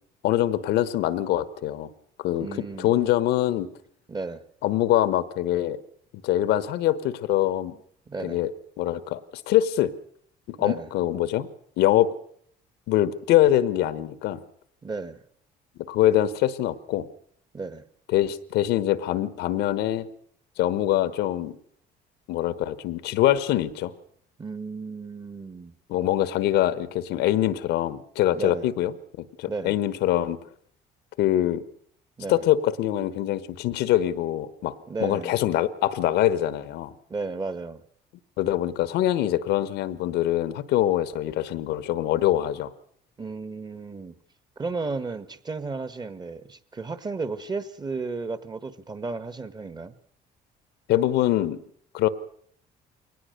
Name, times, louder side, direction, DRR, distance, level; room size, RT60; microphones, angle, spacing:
voice 1, 0.2-1.9 2.2-3.7 4.6-5.8 6.2-7.8 8.2-9.9 10.5-11.5 11.8-12.1 12.9-14.4 15.9-17.1 18.1-20.1 20.6-21.6 22.3-23.9 25.9-30.4 31.2-31.6 32.3-34.7 35.0-36.9 38.4-42.7 50.9-51.6 51.9-52.1, left 13 dB, 85° left, 15 dB, 1.2 m, -24 dB
voice 2, 2.4-3.0 4.1-4.4 8.1-8.4 10.6-10.9 14.8-15.2 17.5-17.8 24.4-25.7 28.3-28.7 29.5-29.8 32.2-32.4 34.9-35.3 37.1-37.8 43.2-44.2 44.6-49.9, right 3 dB, 25° right, 13 dB, 1.4 m, -33 dB
22.5 x 19.0 x 6.6 m, 0.63 s
cardioid pair, 110°, 17 cm